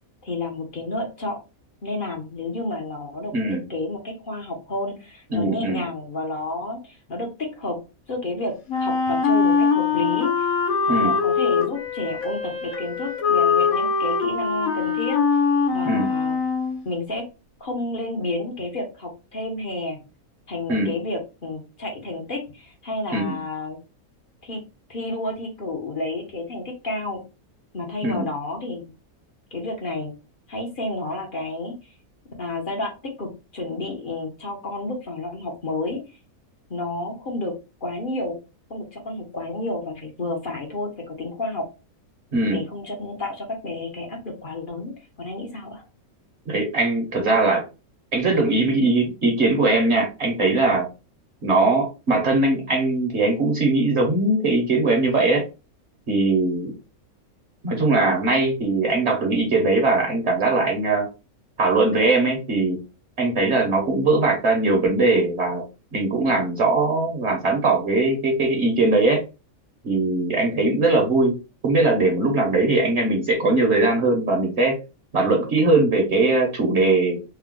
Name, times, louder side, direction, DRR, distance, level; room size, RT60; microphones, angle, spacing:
voice 1, 0.2-1.4 1.8-3.3 3.7-7.8 8.1-10.6 10.9-15.2 15.7-16.4 16.8-17.2 17.6-20.0 20.5-23.8 24.4-24.6 24.9-27.2 27.7-28.9 29.5-30.1 30.5-31.9 32.4-32.9 33.2-36.2 36.7-37.5 37.8-38.4 38.7-41.6 42.5-45.8, left 2 dB, 40° left, 1 dB, 0.9 m, -30 dB
voice 2, 5.3-5.8 10.9-11.1 15.8-16.1 20.7-20.9 23.1-23.4 28.0-28.3 42.3-42.6 46.5-47.6 48.1-50.9 51.4-55.4 56.1-56.7 57.6-61.1 61.6-62.8 63.2-65.6 65.9-69.2 69.8-71.4 71.6-74.8 75.1-77.2, right 2 dB, 50° right, 0 dB, 1.2 m, -20 dB
Wind instrument woodwind instrument, 8.7-16.8, left 5 dB, 75° left, 1.2 m, -22 dB
3.4 x 2.2 x 3.6 m, 0.29 s
omnidirectional pair, 1.5 m